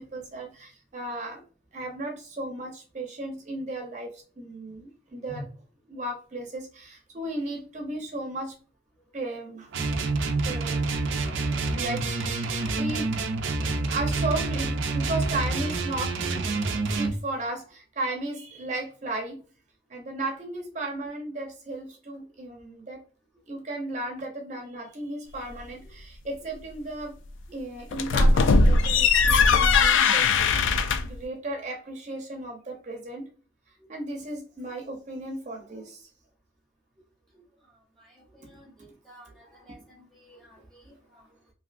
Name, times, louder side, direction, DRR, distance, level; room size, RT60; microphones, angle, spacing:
voice 1, 0.0-1.4 1.7-5.4 5.9-8.5 9.1-9.7 10.5-10.8 11.7-12.4 12.7-13.1 13.9-19.4 19.9-23.0 23.5-27.1 27.5-30.3 30.7-33.3 33.9-36.1 39.4-39.6 41.1-41.2, right 2 dB, 40° right, 1 dB, 0.7 m, -35 dB
sound 1, 9.7-17.2, right 3 dB, 85° right, 0.5 m, -27 dB
sound 2, 27.9-31.2, left 4 dB, 85° left, 0.3 m, -20 dB
voice 2, 38.1-39.8 40.1-40.9, equal, ahead, -3 dB, 0.7 m, -51 dB
3.0 x 2.7 x 2.5 m, 0.40 s
head